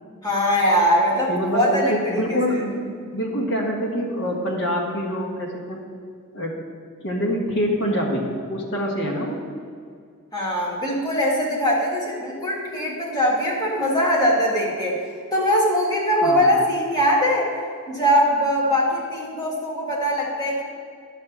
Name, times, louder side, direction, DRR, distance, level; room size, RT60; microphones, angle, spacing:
voice 1, 0.2-1.9 2.3-2.4 10.3-15.0 15.3-17.5 17.9-20.6, equal, 15° left, -5 dB, 1.8 m, -21 dB
voice 2, 1.3-5.8 6.3-6.6 7.0-9.4 16.2-16.6, equal, 55° left, -2 dB, 1.5 m, -25 dB
10.5 x 3.5 x 7.2 m, 2.2 s
head